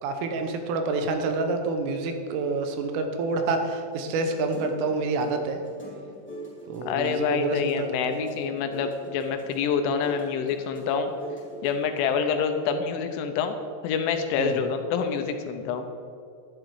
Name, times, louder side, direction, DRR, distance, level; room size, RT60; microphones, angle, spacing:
voice 1, 0.0-5.6 6.7-8.2 14.4-14.5, right 3 dB, 85° right, 6 dB, 3.6 m, -28 dB
sound 1, 3.8-12.0, right 1 dB, 5° left, 1.2 m, -42 dB
voice 2, 6.9-11.1 11.6-13.6 13.8-15.9, left 6 dB, 80° left, 6 dB, 3.2 m, -27 dB
11.0 x 11.0 x 4.8 m, 2.5 s
omnidirectional pair, 5.6 m